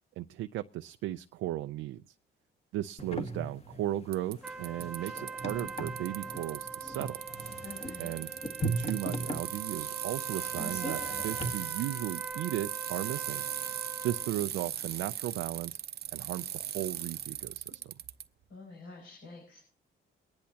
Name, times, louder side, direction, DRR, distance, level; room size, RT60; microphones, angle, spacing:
voice 1, 0.2-2.0 2.7-7.2 8.0-8.3 8.8-13.5 14.0-15.8 16.1-17.9, right 14 dB, 90° right, 0.5 m, -36 dB
sound 1, 3.0-11.5, right 2 dB, 30° left, 1.8 m, -38 dB
Bicycle, 4.1-18.2, right 10 dB, 55° right, 0.7 m, -38 dB
sound 2, 4.4-14.3, right 4 dB, ahead, 0.9 m, -43 dB
voice 2, 7.6-8.1 18.5-19.6, left 3 dB, 75° left, 5.9 m, -48 dB
23.0 x 10.5 x 2.8 m
cardioid pair, 90°, 20 cm